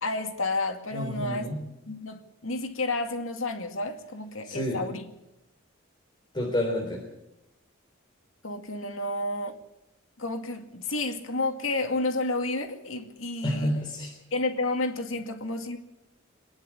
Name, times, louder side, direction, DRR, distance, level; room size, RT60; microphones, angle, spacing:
voice 1, 0.0-1.5 1.9-5.1 8.4-9.6 10.2-13.7 14.3-15.8, left 2 dB, 80° left, 2.3 m, -31 dB
voice 2, 0.9-1.6 4.4-4.9 6.3-7.0 13.4-14.1, left 1 dB, 25° left, 3.5 m, -29 dB
24.5 x 11.0 x 9.7 m
head